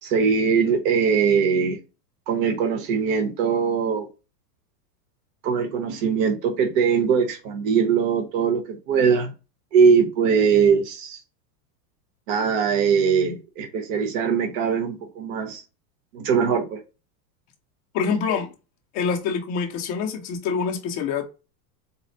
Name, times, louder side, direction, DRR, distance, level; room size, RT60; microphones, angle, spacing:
voice 1, 0.0-1.8 2.3-4.1 5.4-9.3 9.7-11.2 12.3-15.6 16.1-16.8, right 6 dB, 50° right, 1.0 m, -21 dB
voice 2, 17.9-18.5 18.9-21.2, left 6 dB, 20° left, 0.3 m, -25 dB
4.1 x 2.0 x 3.7 m
supercardioid pair, 140°, 49 cm